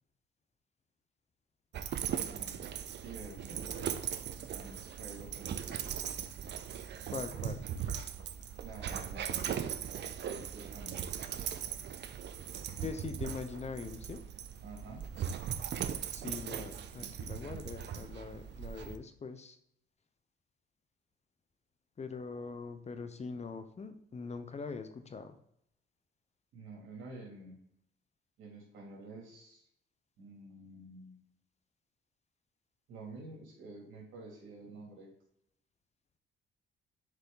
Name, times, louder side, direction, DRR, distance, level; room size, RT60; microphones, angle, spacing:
Dog, 1.7-19.0, right 9 dB, 60° right, 0.6 m, -39 dB
voice 1, 2.3-2.8 3.0-4.1 4.5-6.1 8.6-11.0 14.6-15.1 26.5-27.6 28.4-29.6 30.2-31.2 32.9-35.1, right 2 dB, 85° right, -1 dB, 3.0 m, -49 dB
voice 2, 7.1-7.6 12.8-14.2 16.1-19.6 22.0-25.4, left 4 dB, 35° left, 9 dB, 0.8 m, -42 dB
6.7 x 4.8 x 3.9 m, 0.71 s
cardioid pair, 90°, 20 cm